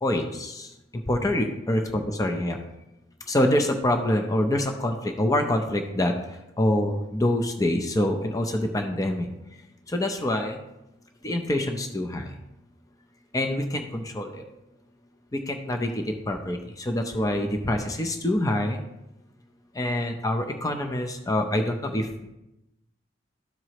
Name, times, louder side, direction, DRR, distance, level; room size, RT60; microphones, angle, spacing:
voice 1, 0.0-1.8 2.1-2.6 3.3-6.1 6.6-9.3 9.9-10.6 11.2-12.3 13.3-14.4 15.3-18.8 19.7-22.3, left 1 dB, 20° left, 3 dB, 0.6 m, -26 dB
13.0 x 4.7 x 2.9 m, 0.92 s
head